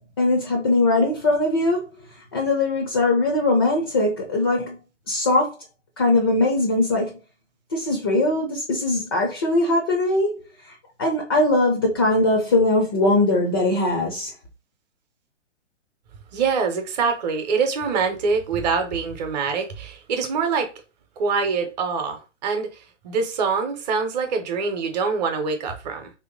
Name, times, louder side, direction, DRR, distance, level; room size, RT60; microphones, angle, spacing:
voice 1, 0.2-1.9 2.3-4.8 5.1-5.6 6.0-7.2 7.7-14.3, left 2 dB, 20° left, 0.4 m, -21 dB
voice 2, 16.3-20.7 21.2-22.7 23.0-26.1, right 5 dB, 35° right, 0.8 m, -24 dB
3.0 x 2.8 x 3.9 m
figure-of-eight pair, 130°, 37 cm